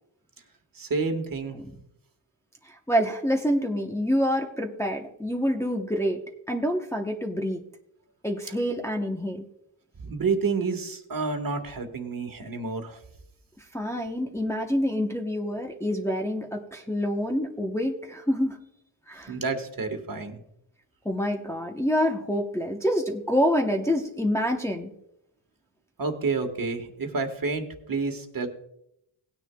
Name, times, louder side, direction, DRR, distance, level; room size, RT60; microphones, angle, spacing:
voice 1, 0.7-1.6 10.0-13.0 19.3-20.4 26.0-28.5, right 4 dB, 45° right, 5 dB, 1.4 m, -29 dB
voice 2, 2.6-6.2 6.5-7.6 8.2-9.5 13.7-18.6 19.1-19.4 21.0-24.9, equal, 5° left, 1 dB, 0.8 m, -27 dB
18.0 x 9.7 x 2.2 m, 0.79 s
wide cardioid pair, 120°, 47 cm